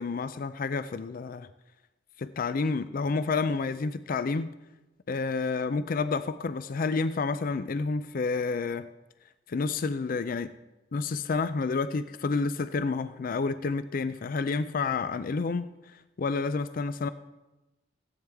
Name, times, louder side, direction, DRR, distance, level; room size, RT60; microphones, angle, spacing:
voice 1, 0.0-1.5 2.2-4.5 5.1-8.9 9.5-10.5 10.9-17.1, left 4 dB, 50° left, 13 dB, 0.4 m, -29 dB
16.0 x 9.0 x 3.5 m, 1.0 s
head